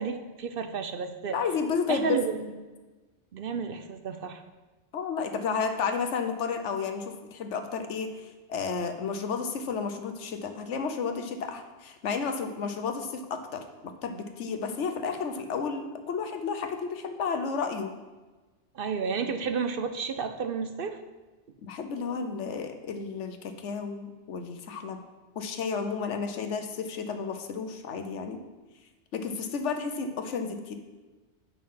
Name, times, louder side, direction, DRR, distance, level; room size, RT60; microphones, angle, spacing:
voice 1, 0.0-1.4 1.9-2.5 3.3-4.4 18.7-21.0, right 5 dB, 60° right, 7 dB, 0.7 m, -31 dB
voice 2, 1.3-2.2 4.9-8.2 8.5-17.9 21.6-25.0 25.3-28.4 29.1-30.8, left 5 dB, 85° left, 7 dB, 1.2 m, -32 dB
8.5 x 5.7 x 5.6 m, 1.2 s
omnidirectional pair, 1.2 m